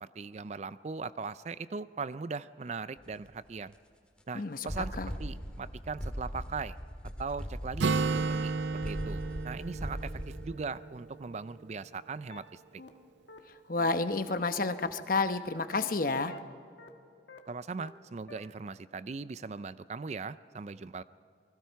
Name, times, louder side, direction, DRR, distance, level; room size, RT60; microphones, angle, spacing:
voice 1, 0.1-3.7 4.3-6.8 7.2-8.5 8.8-12.6 17.5-21.0, right 4 dB, 40° right, 15 dB, 0.4 m, -39 dB
sound 1, 3.0-3.3 3.7-3.8 4.2-4.3 4.7-10.5, equal, 5° left, 1.9 m, -40 dB
voice 2, 4.3-4.7 5.0-5.1 13.7-16.3, left 3 dB, 50° left, 9 dB, 1.0 m, -30 dB
Acoustic guitar, 7.8-11.5, right 4 dB, 85° right, 0.7 m, -33 dB
sound 2, 12.3-12.4 12.8-12.9 13.3-13.4 13.8-13.9 14.3-14.4 14.8-14.9 15.3-15.4 15.8-15.9 16.3-16.4 16.8-16.9 17.3-17.4 17.8-17.9 18.3-18.4, left 3 dB, 85° left, 1.7 m, -48 dB
28.0 x 20.0 x 4.7 m, 2.4 s
head